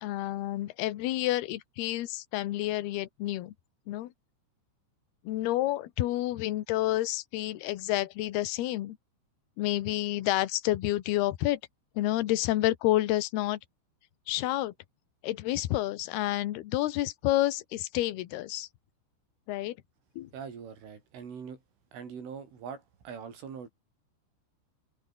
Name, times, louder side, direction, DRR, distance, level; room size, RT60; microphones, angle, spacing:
voice 1, 0.0-3.5 3.9-4.1 5.3-9.0 9.6-11.6 12.0-13.6 14.3-14.7 15.2-18.7 19.5-19.8 20.2-20.3, left 15 dB, 70° left, 2.7 m, -29 dB
voice 2, 20.3-21.6 21.9-23.7, right 6 dB, 70° right, 7.9 m, -42 dB
open air
omnidirectional pair, 5.8 m